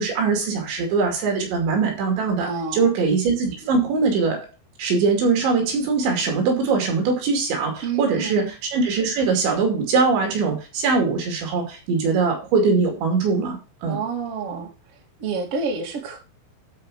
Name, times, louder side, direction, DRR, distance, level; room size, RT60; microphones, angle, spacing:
voice 1, 0.0-4.4 4.8-14.0, right 4 dB, 65° right, 2 dB, 4.6 m, -22 dB
voice 2, 2.4-2.9 7.8-8.4 13.9-14.7 15.2-16.2, right 5 dB, 40° right, -1 dB, 2.7 m, -28 dB
12.5 x 5.1 x 4.9 m, 0.32 s
omnidirectional pair, 5.9 m